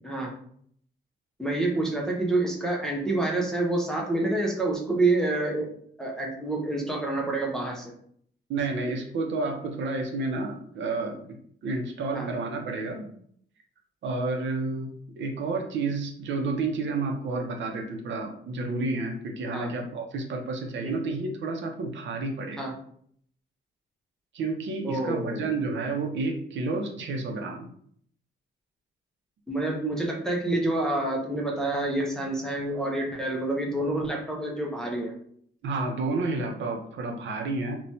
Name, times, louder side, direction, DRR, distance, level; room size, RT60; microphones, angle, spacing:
voice 1, 1.4-7.9 12.1-12.3 19.5-19.7 20.8-21.0 22.6-22.7 24.8-25.5 29.5-35.2, right 2 dB, 5° left, -2 dB, 0.4 m, -28 dB
voice 2, 8.5-13.1 14.0-22.7 24.3-27.7 35.6-37.8, right 3 dB, 65° right, 2 dB, 0.6 m, -30 dB
3.0 x 2.2 x 2.7 m, 0.63 s
wide cardioid pair, 180°, 20 cm